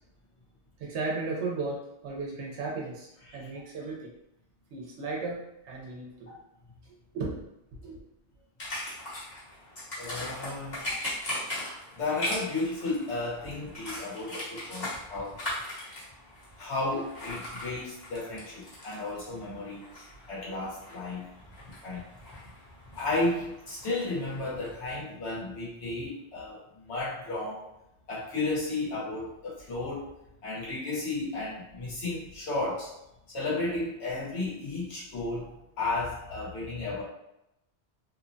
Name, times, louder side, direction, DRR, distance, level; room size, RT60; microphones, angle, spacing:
voice 1, 0.8-4.1 4.7-6.3 7.1-7.4 7.8-8.0, right 3 dB, 90° right, -3 dB, 0.9 m, -35 dB
sound 1, 8.6-24.7, left 1 dB, 45° left, 1.0 m, -40 dB
voice 2, 10.0-11.0 11.9-15.4 16.6-21.3 21.8-22.1 22.9-26.6 26.9-27.6 28.1-30.1 30.4-32.9 33.3-35.5 35.8-37.0, left 2 dB, 75° left, -7 dB, 1.2 m, -33 dB
2.8 x 2.1 x 2.5 m, 0.85 s
omnidirectional pair, 1.1 m